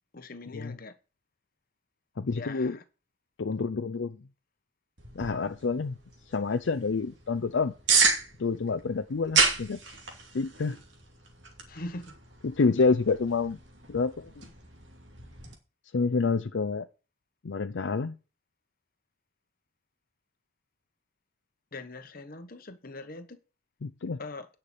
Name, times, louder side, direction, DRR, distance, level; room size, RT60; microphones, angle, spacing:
voice 1, 0.1-0.9 2.3-2.8 11.7-12.2 21.7-23.4 24.2-24.5, left 2 dB, 45° left, 1.1 m, -41 dB
voice 2, 2.2-2.8 3.4-4.2 5.1-5.9 6.3-7.7 8.4-9.8 10.3-10.8 12.4-13.6 13.9-14.5 15.9-16.9 17.4-18.2 23.8-24.2, left 4 dB, 70° left, 0.5 m, -28 dB
sound 1, 5.0-15.5, right 5 dB, 65° right, 2.5 m, -32 dB
9.9 x 5.9 x 6.7 m
head